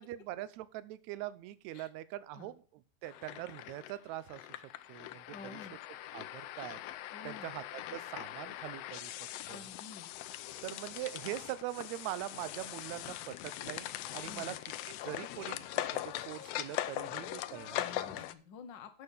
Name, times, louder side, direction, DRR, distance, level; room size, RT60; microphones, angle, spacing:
voice 1, 0.0-4.6 4.9-5.2 5.5-5.6 6.1-6.8 7.2-7.6 7.9-9.1 9.5-9.7 10.6-14.5 14.9-18.1, right 15 dB, 75° right, 15 dB, 1.9 m, -43 dB
sound 1, 3.0-18.3, left 14 dB, 90° left, 1.4 m, -41 dB
voice 2, 5.3-5.7 7.1-7.6 9.5-10.1 14.2-14.5 17.8-19.0, left 5 dB, 65° left, 8 dB, 1.1 m, -50 dB
8.6 x 6.5 x 5.1 m, 0.40 s
omnidirectional pair, 3.4 m